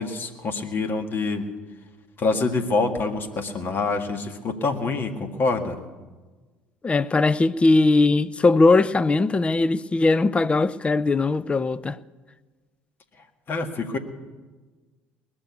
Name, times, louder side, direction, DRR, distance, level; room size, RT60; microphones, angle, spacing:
voice 1, 0.0-1.5 2.2-5.8 13.5-14.0, left 3 dB, 40° left, 1.9 m, -26 dB
voice 2, 6.8-12.0, left 3 dB, 20° left, 0.5 m, -20 dB
20.5 x 7.0 x 8.3 m
hypercardioid pair, 60°, 5 cm